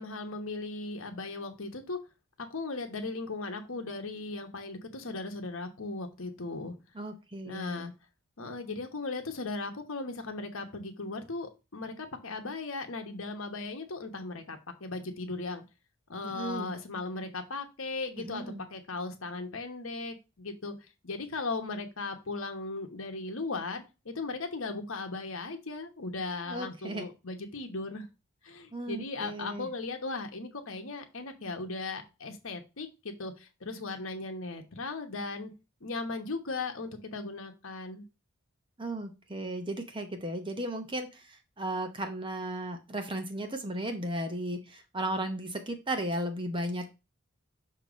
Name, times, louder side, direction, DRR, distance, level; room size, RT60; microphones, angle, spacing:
voice 1, 0.0-2.0 2.4-6.7 7.4-7.9 8.4-15.6 16.1-20.7 21.0-28.1 28.4-35.5 35.8-38.0, left 3 dB, 70° left, 6 dB, 1.1 m, -37 dB
voice 2, 6.9-7.9 16.2-16.7 18.2-18.6 26.5-27.1 28.7-29.7 38.8-46.9, right 1 dB, 25° right, 6 dB, 0.8 m, -35 dB
6.6 x 2.9 x 5.1 m, 0.28 s
head